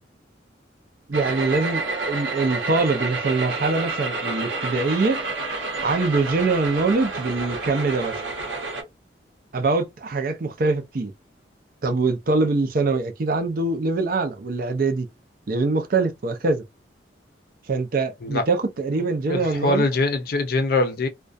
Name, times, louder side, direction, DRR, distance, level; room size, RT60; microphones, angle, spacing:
voice 1, 1.1-5.2 5.8-8.2 9.5-11.1 11.8-15.1 15.5-16.6 17.7-19.8, right 3 dB, 50° right, 0.5 m, -23 dB
sound 1, 1.1-8.8, right 3 dB, 85° right, 0.9 m, -29 dB
voice 2, 19.0-21.1, left 2 dB, 55° left, 0.5 m, -23 dB
2.3 x 2.2 x 2.5 m
head